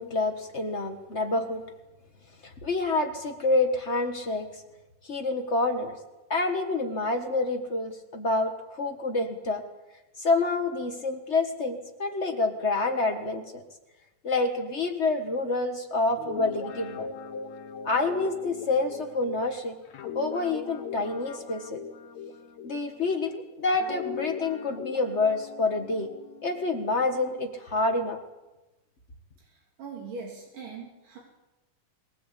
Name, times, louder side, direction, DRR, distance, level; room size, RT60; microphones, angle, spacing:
voice 1, 0.0-1.6 2.4-4.6 5.1-5.9 6.3-9.6 10.2-13.6 14.2-17.1 17.8-19.7 20.1-21.8 22.6-26.1 26.4-28.2, left 3 dB, 45° left, 4 dB, 0.8 m, -27 dB
Guitar, 16.1-23.3 23.7-27.4, left 6 dB, 60° left, 2.6 m, -40 dB
voice 2, 29.4-31.2, right 4 dB, 75° right, -1 dB, 4.5 m, -41 dB
22.5 x 18.0 x 8.4 m, 1.1 s
omnidirectional pair, 3.8 m